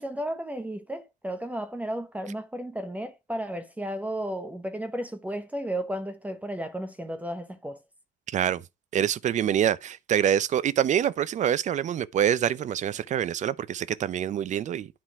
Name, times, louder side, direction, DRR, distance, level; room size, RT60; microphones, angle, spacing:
voice 1, 0.0-7.8, right 1 dB, 10° right, 0.8 m, -33 dB
voice 2, 8.9-14.9, right 10 dB, 45° right, 0.6 m, -25 dB
10.0 x 3.8 x 4.6 m
cardioid pair, 110°, 17 cm